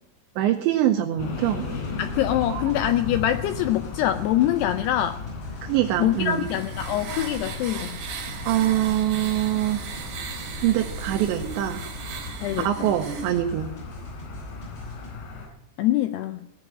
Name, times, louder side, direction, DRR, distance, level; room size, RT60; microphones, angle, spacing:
voice 1, 0.4-1.7 2.5-2.6 5.6-6.5 8.5-9.8 10.6-11.9 12.6-13.7, right 12 dB, 80° right, 3 dB, 3.0 m, -24 dB
sound 1, 1.2-15.5, left 4 dB, 70° left, 6.4 m, -36 dB
sound 2, 1.6-15.1, equal, 25° left, 7.2 m, -43 dB
voice 2, 2.0-5.2 6.0-8.0 12.4-12.7 15.8-16.4, left 12 dB, 85° left, 9 dB, 2.4 m, -24 dB
sound 3, 5.9-13.4, right 5 dB, 60° right, 3.6 m, -37 dB
18.0 x 6.5 x 8.6 m, 0.88 s
omnidirectional pair, 5.4 m